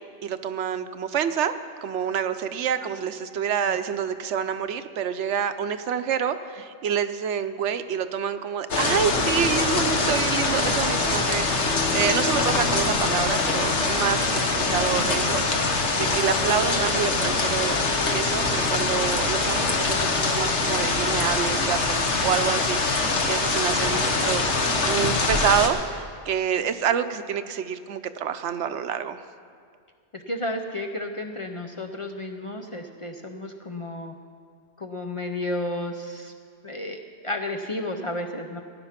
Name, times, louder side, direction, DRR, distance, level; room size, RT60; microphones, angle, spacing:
voice 1, 0.2-1.5 1.8-15.7 16.0-17.8 18.1-24.0 24.3-24.5 24.8-29.2, right 8 dB, 85° right, 10 dB, 1.0 m, -27 dB
sound 1, 8.7-25.7, left 3 dB, 85° left, 1.5 m, -23 dB
voice 2, 14.5-14.8 23.9-24.5 30.1-34.1 34.8-36.3 36.6-38.6, left 1 dB, 35° left, 3 dB, 0.6 m, -32 dB
17.0 x 9.7 x 5.8 m, 2.1 s
omnidirectional pair, 1.1 m